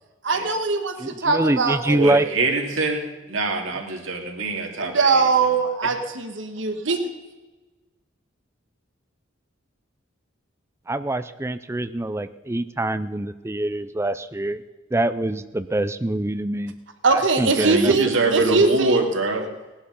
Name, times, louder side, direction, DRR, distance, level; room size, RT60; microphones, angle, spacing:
voice 1, 0.2-2.0 4.8-7.0 17.0-19.0, right 4 dB, 70° right, 6 dB, 1.5 m, -21 dB
voice 2, 1.0-2.2 10.9-14.6 14.9-16.7 17.1-17.9 18.4-18.6, right 1 dB, 15° right, 11 dB, 0.5 m, -25 dB
voice 3, 1.9-5.1 17.6-19.4, right 2 dB, 85° right, 1 dB, 2.9 m, -24 dB
18.5 x 11.5 x 5.4 m, 1.2 s
head